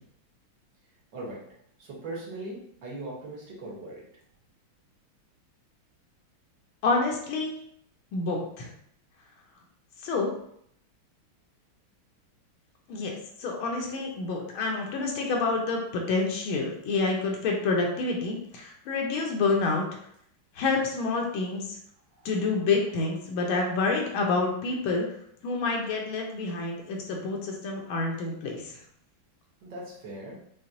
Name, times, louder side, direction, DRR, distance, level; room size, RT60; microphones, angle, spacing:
voice 1, 1.1-1.4 1.8-4.1 22.1-22.3 29.6-30.4, right 2 dB, 60° right, -4 dB, 1.6 m, -39 dB
voice 2, 6.8-7.6 8.1-8.7 10.0-10.3 12.9-19.9 20.6-21.8 22.2-25.0 25.4-28.8, left 3 dB, 85° left, 0 dB, 1.5 m, -28 dB
5.9 x 2.0 x 2.6 m, 0.69 s
omnidirectional pair, 2.3 m